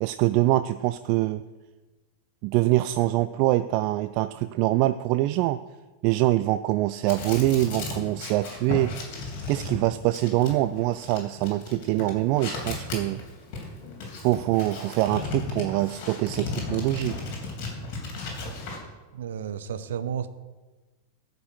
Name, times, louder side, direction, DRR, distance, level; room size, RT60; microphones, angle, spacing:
voice 1, 0.0-1.4 2.4-5.6 6.0-8.9 9.5-13.2 14.2-17.2, right 16 dB, 45° right, 12 dB, 0.3 m, -24 dB
sound 1, 7.1-18.8, left 3 dB, 45° left, 3.4 m, -35 dB
voice 2, 19.1-20.3, right 8 dB, 60° right, 11 dB, 0.8 m, -32 dB
14.5 x 5.3 x 6.3 m, 1.2 s
figure-of-eight pair, 90°, 0 cm